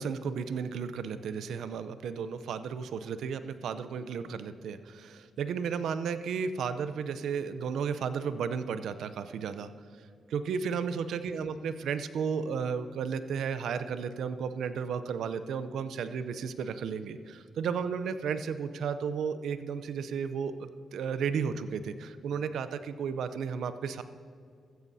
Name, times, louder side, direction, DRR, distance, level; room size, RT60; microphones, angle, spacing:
voice 1, 0.0-9.7 10.3-24.0, right 6 dB, 80° right, 12 dB, 0.6 m, -33 dB
15.5 x 14.0 x 2.7 m, 2.3 s
supercardioid pair, 55°, 0 cm